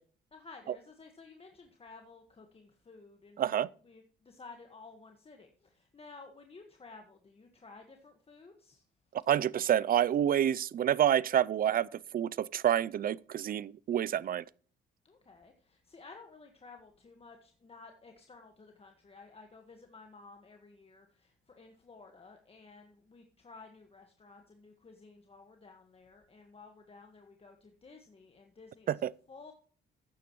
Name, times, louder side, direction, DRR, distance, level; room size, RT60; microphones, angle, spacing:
voice 1, 0.3-8.8 15.0-29.0 29.3-29.5, left 4 dB, 30° left, 1.5 m, -54 dB
voice 2, 3.4-3.7 9.3-14.4 28.9-29.1, right 10 dB, 45° right, 0.4 m, -28 dB
13.0 x 9.3 x 3.1 m
cardioid pair, 90°, 20 cm